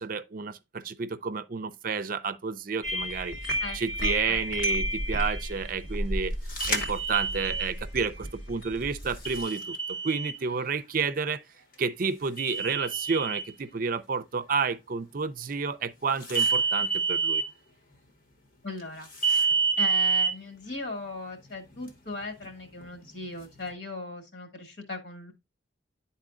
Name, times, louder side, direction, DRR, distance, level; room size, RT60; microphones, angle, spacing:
voice 1, 0.0-6.3 6.7-11.4 11.8-17.4, right 5 dB, 50° right, 0.5 m, -31 dB
sound 1, 2.8-9.4, equal, 90° left, 2.8 m, -32 dB
voice 2, 3.6-4.4 18.6-19.5 19.8-25.3, left 3 dB, 70° left, 1.9 m, -38 dB
sound 2, 6.6-7.7 9.3-10.4 12.4-13.4 16.3-17.4 19.2-20.3, right 5 dB, 50° left, 1.1 m, -27 dB
11.0 x 4.1 x 2.5 m
head